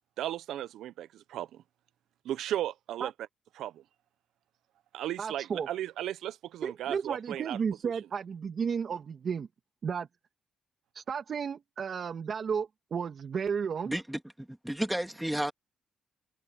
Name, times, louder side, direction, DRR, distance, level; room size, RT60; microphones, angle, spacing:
voice 1, 0.2-1.6 2.2-3.1 3.6-3.8 4.9-7.6, right 12 dB, 80° right, 0.8 m, -35 dB
voice 2, 5.2-5.7 6.6-9.5 9.8-10.1 10.9-13.9, right 6 dB, 45° right, 2.6 m, -33 dB
voice 3, 13.9-15.5, right 1 dB, 5° right, 2.6 m, -32 dB
cardioid pair, 135°, 0 cm